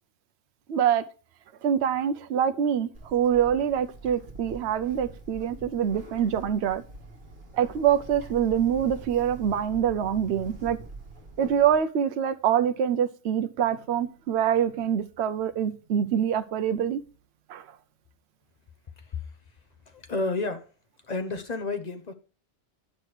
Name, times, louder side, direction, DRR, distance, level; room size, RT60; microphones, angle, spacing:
voice 1, 0.7-1.0 1.6-6.8 7.5-10.8 11.4-17.0 17.5-17.6, right 9 dB, 65° right, 0.9 m, -25 dB
Bird, 2.9-11.8, right 2 dB, 45° right, 1.9 m, -44 dB
voice 2, 19.9-20.7 21.1-22.1, left 3 dB, 35° left, 1.0 m, -31 dB
9.7 x 6.1 x 4.9 m
omnidirectional pair, 1.3 m